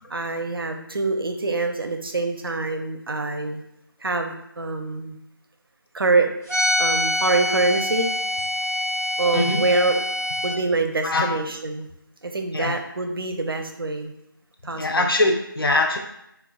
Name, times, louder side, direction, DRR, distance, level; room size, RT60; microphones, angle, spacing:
voice 1, 0.1-3.6 4.0-5.2 5.9-6.3 6.8-8.1 9.2-10.0 10.4-11.9 12.2-14.1 14.6-15.1, right 3 dB, 80° right, 5 dB, 0.5 m, -25 dB
sound 1, 6.5-10.5, left 1 dB, 40° left, 0.8 m, -25 dB
voice 2, 9.3-9.6 11.0-11.3 12.5-12.8 14.7-16.0, left 2 dB, 80° left, 3 dB, 0.6 m, -22 dB
3.9 x 2.2 x 2.3 m, 0.80 s
figure-of-eight pair, 175°, 12 cm